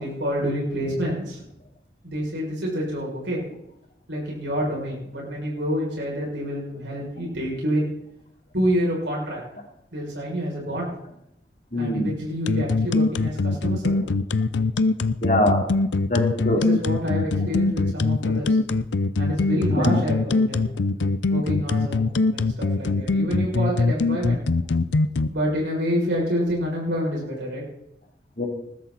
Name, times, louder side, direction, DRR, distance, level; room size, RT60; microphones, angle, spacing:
voice 1, 0.0-1.4 2.0-3.4 4.1-7.9 8.5-9.4 9.9-10.9 11.8-14.1 16.7-18.6 19.2-20.6 21.3-24.4 25.3-27.6, equal, 85° right, -4 dB, 6.7 m, -27 dB
voice 2, 11.7-12.2 13.2-13.3 15.2-15.6 16.1-16.6 17.4-17.5 19.8-20.0 28.4-28.5, left 1 dB, 45° left, 1 dB, 3.2 m, -23 dB
sound 1, 12.5-25.3, left 3 dB, 90° left, 0.6 m, -22 dB
20.0 x 12.5 x 4.2 m, 0.76 s
head